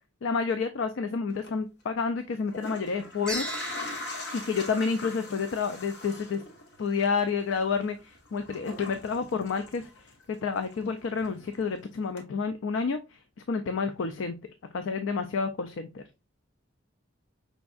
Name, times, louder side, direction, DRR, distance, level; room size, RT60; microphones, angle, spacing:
voice 1, 0.2-3.5 4.3-6.4 6.8-9.9 10.3-13.2 13.5-14.3 14.7-16.0, left 5 dB, 80° left, 9 dB, 0.4 m, -29 dB
sound 1, 1.3-1.5 2.3-10.4 10.7-11.7 12.2-12.3, left 2 dB, 60° left, 1.0 m, -42 dB
sound 2, 3.3-5.7, right 2 dB, 5° left, 0.9 m, -39 dB
5.1 x 3.4 x 2.3 m, 0.27 s
head